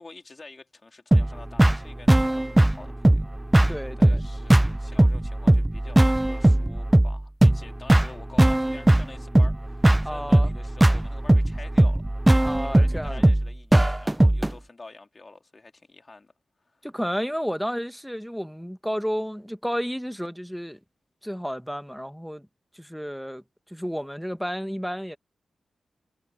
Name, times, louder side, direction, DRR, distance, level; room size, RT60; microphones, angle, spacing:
voice 1, 0.0-3.3 4.0-16.3 16.6-16.8, left 3 dB, 40° left, 3.7 m, -47 dB
sound 1, 1.1-14.5, right 1 dB, 15° right, 0.7 m, -19 dB
voice 2, 3.7-4.2 10.0-10.5 12.4-13.2 16.8-20.8 21.2-22.5 22.7-23.4 23.7-25.2, equal, ahead, 1.5 m, -31 dB
supercardioid pair, 40°, 0 cm